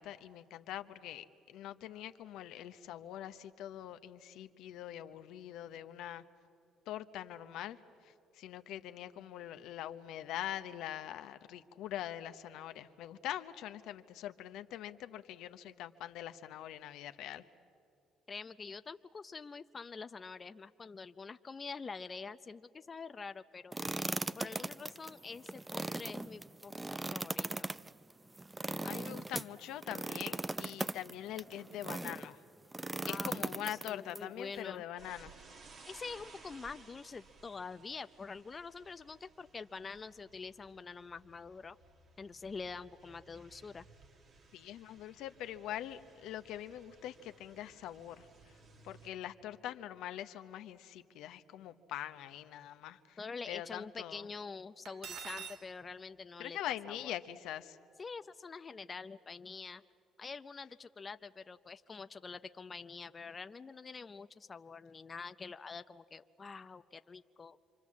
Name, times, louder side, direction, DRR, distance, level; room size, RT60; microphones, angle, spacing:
voice 1, 0.0-6.2 6.9-17.4 28.8-32.4 33.0-35.4 44.5-48.6 48.8-53.2 53.5-54.3 56.4-57.8, left 12 dB, 75° left, 10 dB, 0.8 m, -43 dB
voice 2, 18.3-24.0 24.4-26.7 27.1-27.7 33.0-34.8 35.9-41.8 42.2-43.8 53.2-56.6 56.9-57.1 58.0-59.8 60.2-67.6, left 4 dB, 35° left, 11 dB, 0.6 m, -46 dB
sound 1, 23.7-32.3 32.7-34.2, right 2 dB, 15° right, 0.6 m, -39 dB
sound 2, 35.0-49.1, right 4 dB, 55° right, 2.3 m, -60 dB
Cutlery silverware, 54.9-55.6, right 7 dB, 70° right, 1.2 m, -44 dB
27.5 x 24.0 x 7.4 m, 2.7 s
supercardioid pair, 70°, 0 cm